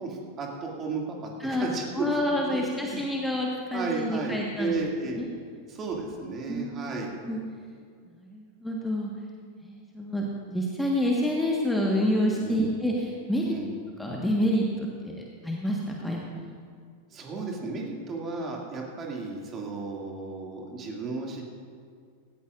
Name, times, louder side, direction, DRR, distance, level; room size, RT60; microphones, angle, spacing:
voice 1, 0.0-3.0 3.7-5.2 5.7-7.1 12.4-12.8 13.4-13.7 17.1-21.5, right 3 dB, 25° right, -1 dB, 2.3 m, -34 dB
voice 2, 1.9-4.8 5.2-5.3 6.5-7.4 8.2-9.1 9.6-13.5 14.0-16.5, equal, 5° left, -2 dB, 1.4 m, -28 dB
17.0 x 16.5 x 2.5 m, 2.1 s
figure-of-eight pair, 90°, 0 cm